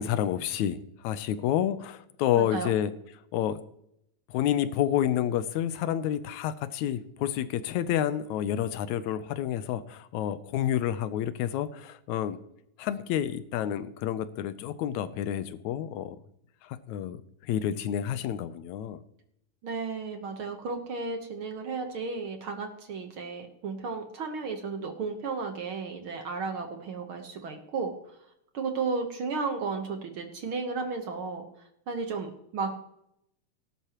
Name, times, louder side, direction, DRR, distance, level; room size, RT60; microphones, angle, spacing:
voice 1, 0.0-2.9 3.3-3.6 4.3-12.4 12.8-16.2 16.6-19.0, left 10 dB, 80° left, 13 dB, 2.0 m, -29 dB
voice 2, 2.3-2.7 19.6-27.9 28.5-31.4 31.9-32.7, right 4 dB, 55° right, 5 dB, 1.6 m, -33 dB
18.0 x 11.5 x 3.0 m, 0.77 s
omnidirectional pair, 3.3 m